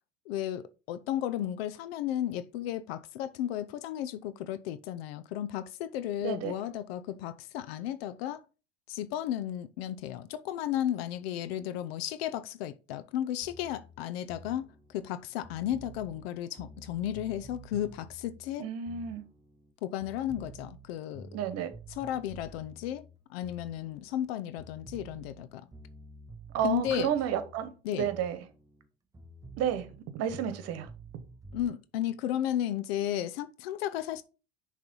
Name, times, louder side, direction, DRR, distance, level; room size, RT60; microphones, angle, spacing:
voice 1, 0.3-8.4 8.9-18.7 19.8-21.3 21.9-25.7 26.6-27.1 27.8-28.1 31.5-34.2, left 11 dB, 75° left, 0.6 m, -34 dB
voice 2, 6.2-6.5 18.6-19.2 21.3-21.7 26.5-28.4 29.6-30.9, right 9 dB, 55° right, 1.2 m, -31 dB
sound 1, 13.4-19.7 20.0-24.3 24.6-28.9 29.1-31.7, right 2 dB, 10° right, 0.5 m, -50 dB
6.7 x 3.2 x 5.4 m
supercardioid pair, 100°, 30 cm